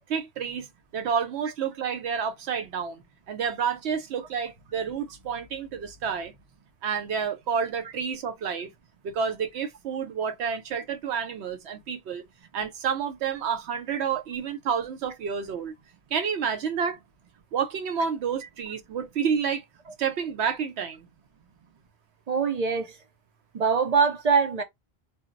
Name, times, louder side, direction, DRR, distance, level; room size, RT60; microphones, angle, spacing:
voice 1, 0.1-0.7 0.9-6.3 6.8-8.7 9.0-12.2 12.5-15.7 16.1-17.0 17.5-19.6 20.0-21.1, right 6 dB, 85° right, 0.9 m, -29 dB
voice 2, 22.3-23.0 23.5-24.6, right 5 dB, 50° right, 0.5 m, -23 dB
2.2 x 2.0 x 3.7 m
omnidirectional pair, 1.1 m